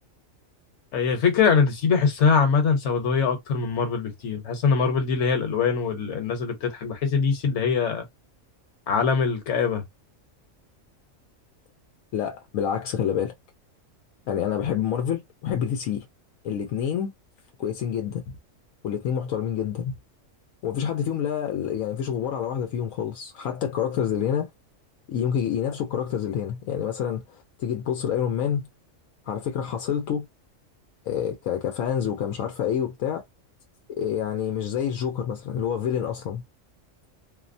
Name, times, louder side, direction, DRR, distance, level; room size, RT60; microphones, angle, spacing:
voice 1, 0.9-8.0 8.9-9.8, left 5 dB, 65° left, 1.2 m, -23 dB
voice 2, 12.1-13.3 14.3-16.1 16.4-17.1 17.6-18.4 18.8-19.9 20.6-24.5 25.1-28.7 29.3-30.3 31.0-33.2 33.9-36.4, left 8 dB, 85° left, 1.0 m, -27 dB
2.7 x 2.1 x 2.5 m
omnidirectional pair, 1.4 m